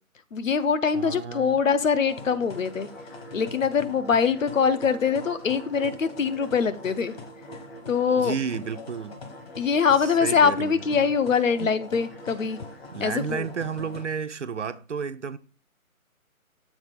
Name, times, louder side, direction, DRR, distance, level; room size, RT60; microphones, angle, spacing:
voice 1, 0.3-2.9 3.3-7.1 7.9-8.3 9.6-12.6 13.0-13.5, left 6 dB, 65° left, 0.7 m, -23 dB
voice 2, 0.9-1.6 8.2-9.1 10.0-11.2 11.6-11.7 12.9-15.4, right 6 dB, 60° right, 0.5 m, -32 dB
sound 1, 2.0-14.0, left 1 dB, 45° left, 1.2 m, -42 dB
7.3 x 3.6 x 5.1 m
hypercardioid pair, 170°, 43 cm